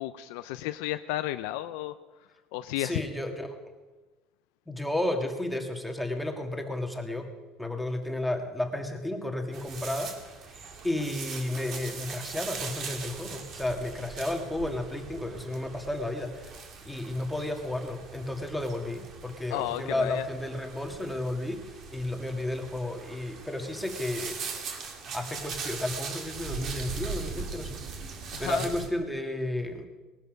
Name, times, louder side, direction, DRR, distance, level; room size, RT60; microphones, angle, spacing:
voice 1, 0.0-1.9 2.5-3.0 19.5-20.2 28.3-28.7, left 15 dB, 85° left, 10 dB, 0.5 m, -32 dB
voice 2, 2.8-3.6 4.7-7.3 7.6-10.2 10.5-16.6 16.9-24.4 25.1-29.9, left 1 dB, ahead, 3 dB, 1.8 m, -33 dB
sound 1, 9.5-28.9, right 5 dB, 50° right, 2.5 m, -40 dB
19.0 x 12.5 x 5.2 m, 1.2 s
cardioid pair, 130°, 0 cm